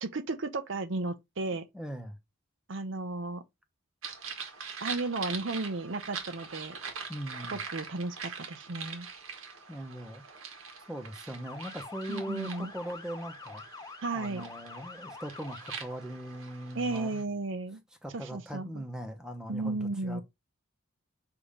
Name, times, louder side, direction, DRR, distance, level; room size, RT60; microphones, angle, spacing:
voice 1, 0.0-1.7 2.7-3.4 4.8-6.8 7.5-9.1 12.1-12.7 14.0-14.5 16.7-17.8 18.1-18.8 19.5-20.2, right 3 dB, 65° right, 0.7 m, -34 dB
voice 2, 1.7-2.2 7.1-7.6 9.7-10.2 10.9-13.6 14.1-17.3 18.0-20.2, equal, 5° right, 1.0 m, -40 dB
sound 1, 4.0-17.2, right 6 dB, 85° right, 1.6 m, -43 dB
Motor vehicle (road) / Siren, 11.4-15.8, left 4 dB, 20° left, 0.4 m, -46 dB
7.0 x 2.8 x 5.0 m
head